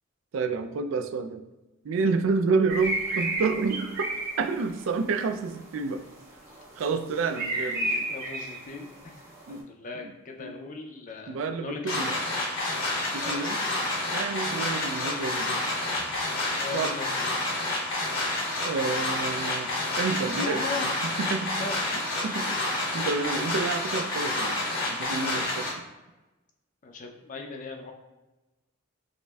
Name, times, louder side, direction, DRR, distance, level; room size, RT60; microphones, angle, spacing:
voice 1, 0.3-1.4 1.8-4.1 4.4-6.0 6.8-8.0 9.5-9.6 10.0-10.1 10.4-10.5 11.3-12.2 13.1-13.6 14.1-15.6 16.7-17.0 18.6-19.7 20.0-20.6 21.0-21.7 22.2-24.6 24.9-25.7, right 4 dB, 70° right, 8 dB, 0.3 m, -29 dB
sound 1, 2.7-9.6, right 1 dB, 50° right, 1.1 m, -34 dB
voice 2, 8.1-12.2 13.2-13.6 16.1-16.3 16.6-17.2 20.3-20.9 21.6-21.8 26.8-27.9, left 3 dB, 40° left, 3 dB, 0.5 m, -38 dB
sound 2, 11.9-25.7, left 2 dB, 75° left, 1.0 m, -29 dB
4.9 x 2.6 x 2.3 m, 1.1 s
head